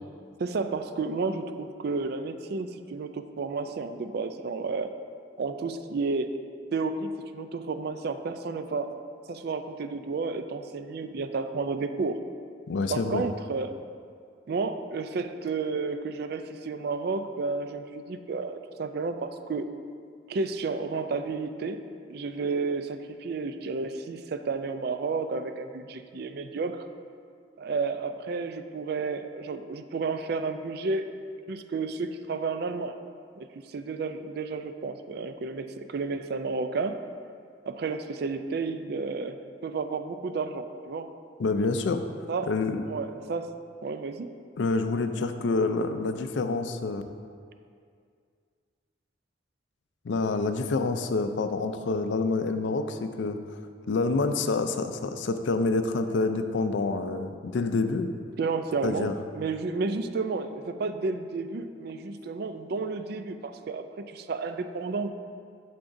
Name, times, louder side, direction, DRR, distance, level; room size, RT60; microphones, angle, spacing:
voice 1, 0.4-4.9 5.4-6.3 6.7-8.9 9.3-12.2 12.9-13.7 14.5-19.7 20.3-21.8 22.1-26.8 27.6-31.0 31.5-32.9 33.4-37.0 37.7-41.1 42.3-42.5 42.9-43.5 43.8-44.3 58.4-65.1, right 4 dB, 55° right, 9 dB, 0.4 m, -31 dB
voice 2, 12.7-13.2 41.4-42.0 42.5-42.8 44.6-47.0 50.0-53.4 53.9-58.1 58.8-59.1, left 3 dB, 75° left, 8 dB, 0.4 m, -27 dB
8.4 x 6.9 x 2.6 m, 2.2 s
head